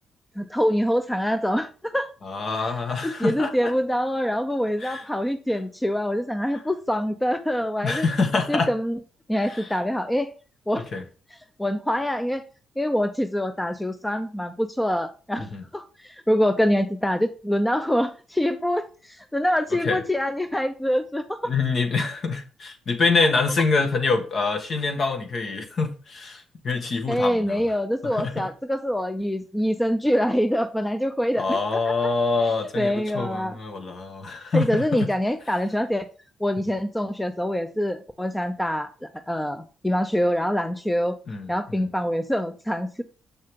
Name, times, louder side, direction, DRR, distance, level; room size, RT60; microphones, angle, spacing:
voice 1, 0.4-2.1 2.6-2.7 3.0-8.1 8.5-9.0 9.3-10.3 10.7-10.9 11.6-12.4 12.8-21.5 27.1-31.6 31.9-32.0 32.8-33.6 34.5-36.1 36.4-41.2 41.5-43.0, equal, 5° left, 0.6 m, -25 dB
voice 2, 2.2-3.7 4.8-5.1 7.8-8.7 9.4-9.7 10.9-11.0 15.4-15.6 19.8-20.0 21.4-27.7 28.1-28.5 31.4-35.1 41.3-41.9, left 4 dB, 50° left, 1.7 m, -25 dB
6.8 x 6.3 x 3.8 m
cardioid pair, 90°, 0 cm